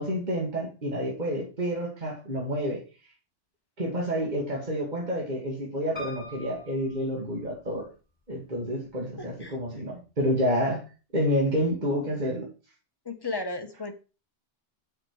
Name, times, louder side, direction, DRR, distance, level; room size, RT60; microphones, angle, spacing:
voice 1, 0.0-2.8 3.8-7.9 8.3-10.8 11.1-12.5, equal, 40° right, -2 dB, 2.1 m, -29 dB
Piano, 6.0-7.9 8.6-9.3 9.6-9.7 9.9-10.0, equal, 35° left, 3.1 m, -44 dB
voice 2, 13.0-13.9, left 3 dB, 20° left, 6 dB, 1.0 m, -33 dB
7.5 x 5.9 x 4.7 m, 0.34 s
omnidirectional pair, 1.3 m